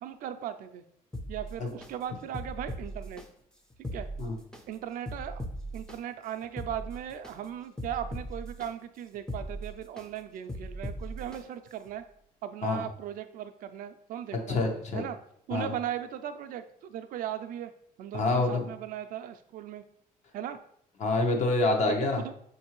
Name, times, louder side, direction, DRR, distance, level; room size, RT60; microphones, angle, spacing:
voice 1, 0.0-0.8 1.3-3.2 3.9-4.1 4.7-5.4 5.7-12.0 12.4-15.2 15.5-17.7 18.0-19.8 20.3-20.6 22.0-22.3, right 10 dB, 65° right, 9 dB, 0.4 m, -38 dB
sound 1, 1.1-1.9 2.3-3.2 3.7-4.6 5.1-6.0 6.4-7.3 7.8-8.7 9.1-10.1 10.5-11.4 11.9-12.0, equal, 5° left, 0.4 m, -38 dB
voice 2, 14.5-15.0 15.5-15.7 18.1-18.7 21.0-22.2, left 2 dB, 50° left, 3 dB, 0.8 m, -26 dB
5.6 x 2.6 x 2.9 m, 0.68 s
cardioid pair, 120°, 15 cm